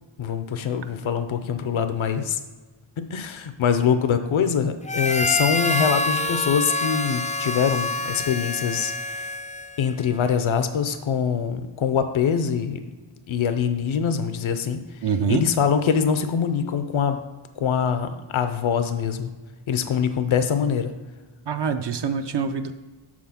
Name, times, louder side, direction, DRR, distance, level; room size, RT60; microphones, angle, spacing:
voice 1, 0.2-2.4 3.0-9.3 9.8-12.8 13.3-14.8 15.3-17.2 17.6-19.3 19.7-20.9, left 7 dB, 70° left, 9 dB, 0.6 m, -24 dB
Harmonica, 4.9-9.9, left 2 dB, 15° left, 0.3 m, -26 dB
voice 2, 15.0-15.4 21.5-22.7, right 6 dB, 60° right, 7 dB, 0.5 m, -25 dB
7.5 x 3.6 x 5.8 m, 1.3 s
wide cardioid pair, 110°, 49 cm